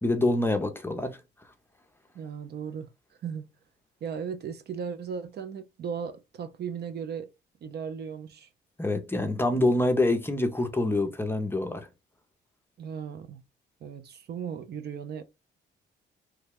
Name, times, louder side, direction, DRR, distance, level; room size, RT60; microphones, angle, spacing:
voice 1, 0.0-1.2 8.8-11.9, left 2 dB, 10° left, 0.6 m, -26 dB
voice 2, 2.1-2.9 3.2-3.5 4.0-7.3 7.6-8.5 12.8-13.4 13.8-15.2, right 7 dB, 55° right, 0.5 m, -36 dB
3.2 x 2.2 x 3.4 m
cardioid pair, 90°, 20 cm